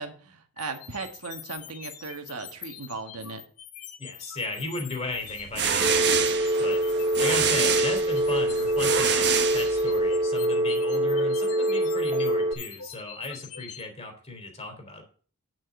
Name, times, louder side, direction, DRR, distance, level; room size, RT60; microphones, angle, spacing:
voice 1, 0.0-3.4, right 4 dB, 80° right, 6 dB, 1.5 m, -37 dB
sound 1, 0.6-13.8, left 10 dB, 80° left, 1.5 m, -44 dB
voice 2, 4.0-6.8 7.2-15.0, left 2 dB, 30° left, 3 dB, 3.1 m, -35 dB
sound 2, 5.3-10.2, right 7 dB, 50° right, 1.2 m, -27 dB
Telephone, 5.8-12.5, right 1 dB, 25° right, 1.2 m, -25 dB
9.4 x 6.2 x 6.2 m, 0.42 s
head